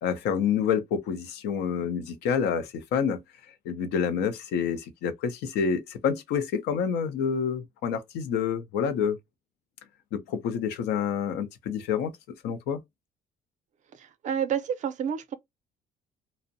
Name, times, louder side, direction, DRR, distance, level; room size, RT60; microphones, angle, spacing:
voice 1, 0.0-3.2 3.7-9.2 10.1-12.1 12.4-12.8, left 7 dB, 85° left, 0.6 m, -28 dB
voice 2, 14.0-15.3, right 8 dB, 45° right, 0.5 m, -29 dB
2.5 x 2.0 x 2.5 m
cardioid pair, 110°, 17 cm